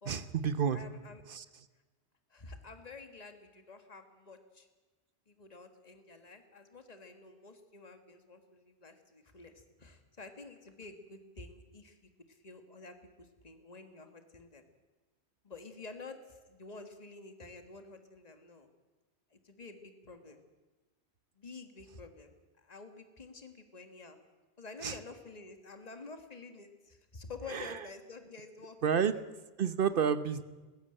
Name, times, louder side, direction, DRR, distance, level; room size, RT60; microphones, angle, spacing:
voice 1, 0.0-0.8 1.3-1.5 24.8-25.0 27.4-27.9 28.8-29.1 29.6-30.4, right 7 dB, 55° right, 13 dB, 1.1 m, -30 dB
voice 2, 0.7-1.2 2.3-4.7 5.3-14.6 15.4-18.7 19.3-20.4 21.4-22.3 22.6-24.2 24.6-28.8, left 3 dB, 35° left, 7 dB, 1.7 m, -50 dB
20.5 x 15.5 x 8.9 m, 1.2 s
omnidirectional pair, 1.1 m